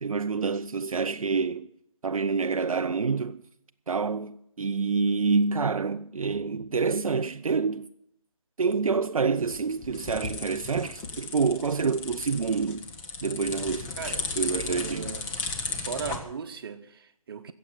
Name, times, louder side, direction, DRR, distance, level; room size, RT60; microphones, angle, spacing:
voice 1, 0.0-1.7 2.0-3.4 3.9-7.9 8.6-12.9 13.2-15.1, right 5 dB, 70° right, 0.5 m, -27 dB
sound 1, 9.4-16.2, left 4 dB, 10° left, 0.9 m, -35 dB
voice 2, 14.7-15.3 15.8-17.5, right 6 dB, 40° right, 1.1 m, -37 dB
14.5 x 7.6 x 9.1 m
figure-of-eight pair, 150°, 18 cm